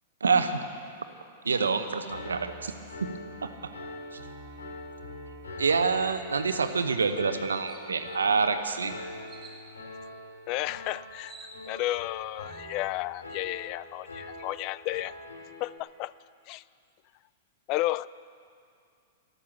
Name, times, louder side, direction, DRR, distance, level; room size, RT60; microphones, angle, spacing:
voice 1, 0.2-0.6 1.4-2.7 3.4-3.7 4.1-4.2 5.6-8.9, right 5 dB, 80° right, 8 dB, 1.0 m, -27 dB
Piano, 2.1-15.8, left 1 dB, 85° left, 2.6 m, -43 dB
sound 1, 6.6-6.8 7.3-7.4 7.7-8.2 9.3-9.6 10.7-10.8 11.0-12.0, right 3 dB, 20° right, 2.8 m, -50 dB
voice 2, 10.5-15.2 15.6-16.1 16.5-16.6 17.7-18.1, left 17 dB, 45° left, 20 dB, 0.3 m, -32 dB
13.5 x 12.5 x 7.2 m, 2.3 s
hypercardioid pair, 105°, 0 cm